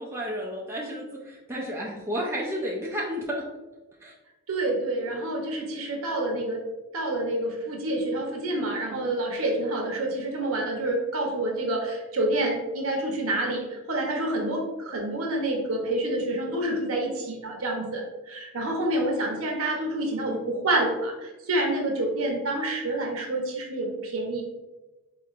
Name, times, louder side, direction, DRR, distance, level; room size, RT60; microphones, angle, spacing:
voice 1, 0.0-3.4 4.0-4.1, equal, 10° right, -3 dB, 0.4 m, -32 dB
voice 2, 4.5-6.6 6.9-24.4, right 1 dB, 70° right, 0 dB, 0.8 m, -28 dB
4.3 x 3.0 x 2.4 m, 1.1 s
head